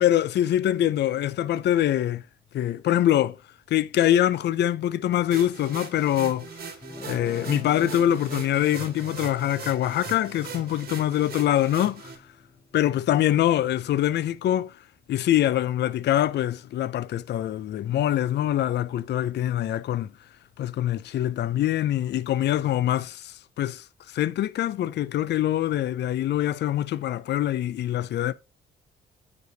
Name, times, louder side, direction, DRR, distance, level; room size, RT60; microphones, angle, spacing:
voice 1, 0.0-2.2 2.5-3.4 3.7-6.5 7.1-12.1 12.7-14.7 15.1-20.1 20.6-28.3, left 12 dB, 60° left, 0.5 m, -24 dB
sound 1, 5.3-12.2, right 5 dB, 50° right, 1.8 m, -40 dB
Guitar, 6.8-13.9, left 3 dB, 25° left, 2.7 m, -46 dB
9.2 x 4.9 x 2.7 m
cardioid pair, 90°, 20 cm